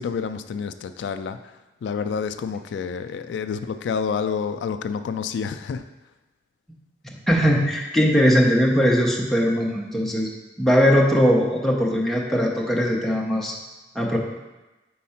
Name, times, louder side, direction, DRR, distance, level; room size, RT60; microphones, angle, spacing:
voice 1, 0.0-5.8, left 6 dB, 80° left, 9 dB, 0.3 m, -29 dB
voice 2, 7.0-10.3 10.6-13.5 13.9-14.2, equal, ahead, -3 dB, 0.8 m, -20 dB
4.6 x 4.2 x 5.6 m, 1.1 s
head